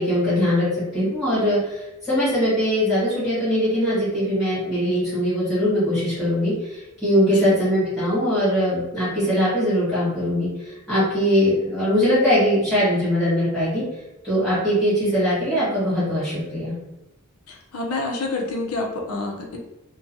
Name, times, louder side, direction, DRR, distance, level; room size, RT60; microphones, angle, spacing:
voice 1, 0.0-13.8 14.2-16.8, equal, ahead, -12 dB, 1.4 m, -21 dB
voice 2, 7.3-7.6 17.5-19.6, left 2 dB, 90° left, 1 dB, 0.6 m, -28 dB
2.8 x 2.2 x 2.6 m, 0.93 s
head